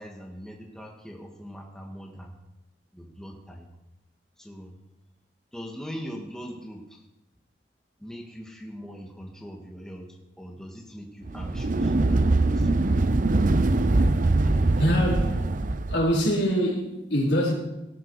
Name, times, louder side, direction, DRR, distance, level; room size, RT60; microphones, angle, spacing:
voice 1, 0.0-2.3 2.9-3.7 4.4-4.8 5.5-7.0 8.0-10.1 10.4-12.8, equal, 5° left, 1.8 m, -41 dB
sound 1, 11.3-16.1, right 2 dB, 50° right, 0.7 m, -22 dB
voice 2, 14.8-15.5 15.9-17.5, equal, 70° left, 4.4 m, -24 dB
18.0 x 11.0 x 4.8 m
head